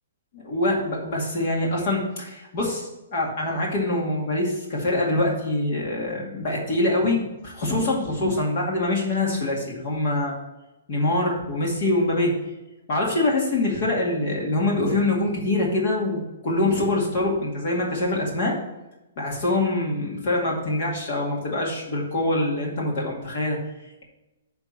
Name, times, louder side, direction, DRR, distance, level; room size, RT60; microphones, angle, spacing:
voice 1, 0.3-10.4 10.9-12.4 12.9-18.6 19.2-23.6, left 2 dB, 35° left, -2 dB, 2.2 m, -24 dB
9.8 x 3.5 x 7.1 m, 1.0 s
hypercardioid pair, 175°, 0 cm